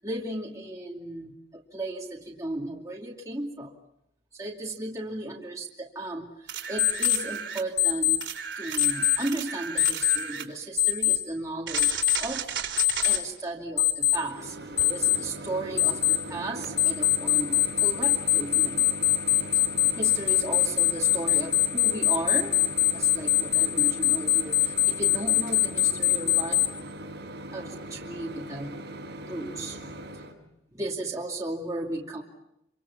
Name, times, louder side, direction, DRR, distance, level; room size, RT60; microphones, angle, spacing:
voice 1, 0.0-3.7 4.3-8.2 8.6-12.5 13.0-19.1 20.0-22.6 22.9-26.6 27.5-28.7 29.2-29.8 30.1-32.2, right 2 dB, 20° right, -2 dB, 2.6 m, -35 dB
sound 1, 6.5-7.7 8.2-10.5 11.7-13.2 16.6-16.7, right 7 dB, 75° right, 3.9 m, -34 dB
Alarm, 6.8-7.2 7.8-8.2 8.8-9.2 9.8-10.2 10.8-11.2 11.8-12.2 12.8-13.2 13.8-14.2 14.8-15.2 15.8-16.2 16.8-26.7, left 14 dB, 40° left, 4.4 m, -21 dB
Microwave oven, 14.0-30.3, right 1 dB, 60° right, 5.9 m, -40 dB
27.0 x 25.5 x 7.2 m, 0.83 s
head